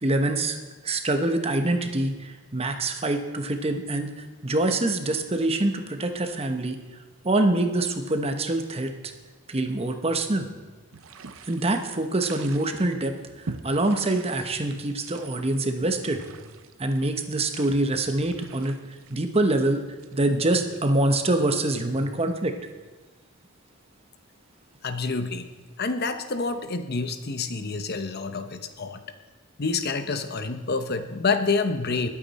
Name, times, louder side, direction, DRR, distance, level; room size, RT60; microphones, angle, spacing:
voice 1, 0.0-0.6 0.8-6.8 7.2-9.1 9.5-10.5 11.4-16.2 16.8-18.8 19.1-19.8 20.1-22.5, right 2 dB, 30° right, 6 dB, 1.0 m, -25 dB
sound 1, 10.9-20.5, right 4 dB, 70° right, 0.7 m, -44 dB
voice 2, 24.8-25.5 25.8-29.0 29.6-32.1, left 4 dB, 50° left, 8 dB, 0.9 m, -28 dB
20.5 x 8.6 x 4.2 m, 1.3 s
head